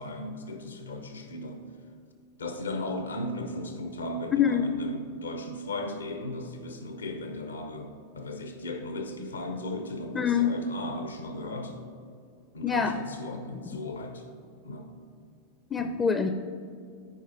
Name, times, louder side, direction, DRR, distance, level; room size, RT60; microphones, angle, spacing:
voice 1, 0.0-1.6 2.4-11.8 12.5-14.2 14.6-14.9 15.8-16.2, left 1 dB, 70° left, 6 dB, 0.8 m, -36 dB
voice 2, 4.3-4.6 10.1-10.5 12.6-13.0 15.7-16.3, left 7 dB, 20° left, 9 dB, 0.4 m, -25 dB
14.5 x 4.9 x 4.1 m, 2.3 s
figure-of-eight pair, 90°, 0 cm